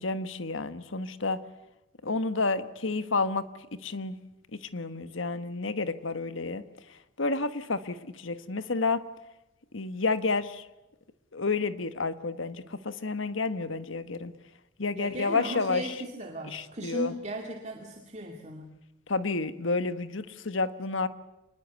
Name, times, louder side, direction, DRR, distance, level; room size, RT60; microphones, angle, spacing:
voice 1, 0.0-1.4 2.0-4.2 4.5-6.6 7.2-9.0 9.7-10.7 11.3-14.3 14.8-15.9 16.5-17.1 19.1-21.1, left 3 dB, 75° left, 12 dB, 1.3 m, -30 dB
voice 2, 15.0-18.7, right 1 dB, 35° right, 2 dB, 2.4 m, -37 dB
26.0 x 21.0 x 8.3 m, 0.94 s
head